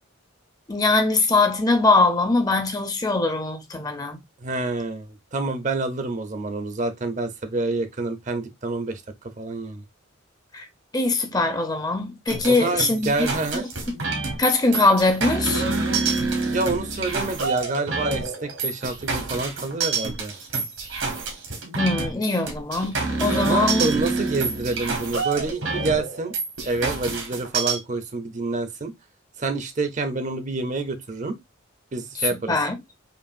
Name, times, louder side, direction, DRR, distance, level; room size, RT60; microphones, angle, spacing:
voice 1, 0.7-4.2 10.5-10.7 10.9-13.3 13.5-13.7 14.4-15.6 21.8-23.9 32.2-32.7, left 3 dB, 20° left, 0.6 m, -22 dB
voice 2, 4.4-9.0 9.4-9.8 12.5-13.7 16.4-20.3 23.5-26.3 26.6-28.9 29.4-31.4 31.9-32.6, right 3 dB, 35° right, 0.6 m, -27 dB
sound 1, 12.3-27.8, right 4 dB, 80° right, 1.5 m, -27 dB
5.2 x 2.5 x 2.4 m
head